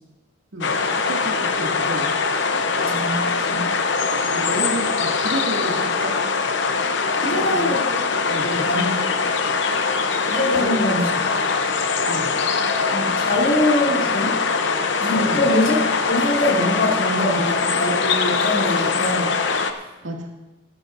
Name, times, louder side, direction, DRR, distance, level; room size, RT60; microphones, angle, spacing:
voice 1, 0.5-2.2 3.0-3.2 3.9-6.2 7.3-7.9 8.3-8.5 10.6-10.8 12.0-12.3 15.1-15.5 17.3-17.4 20.0-20.3, right 1 dB, 80° right, 0 dB, 2.3 m, -31 dB
sound 1, 0.6-19.7, left 4 dB, 65° left, 0.8 m, -22 dB
voice 2, 2.8-3.6 7.2-7.8 8.4-9.2 10.3-11.4 12.7-14.3 15.0-15.8 16.1-19.4, left 1 dB, 85° left, -5 dB, 3.2 m, -23 dB
17.5 x 12.0 x 2.6 m, 1.1 s
head